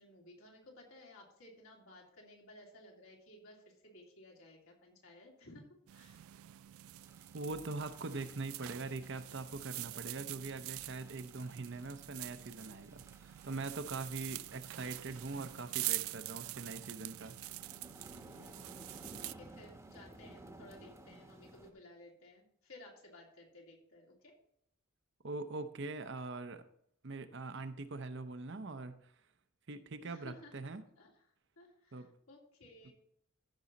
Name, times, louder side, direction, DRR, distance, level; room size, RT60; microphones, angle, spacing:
voice 1, 0.0-6.3 18.4-24.3 30.0-30.5 31.0-31.2 31.6-32.9, left 1 dB, 80° left, -1 dB, 2.9 m, -57 dB
sound 1, 5.9-19.3, right 17 dB, 75° right, 0.3 m, -45 dB
sound 2, 7.0-21.7, right 1 dB, 15° right, 1.0 m, -58 dB
voice 2, 7.3-17.3 25.2-26.6 27.0-29.0 29.7-30.8 31.9-32.1 32.8-32.9, right 3 dB, 55° right, 9 dB, 0.7 m, -42 dB
14.5 x 6.2 x 4.1 m, 0.69 s
head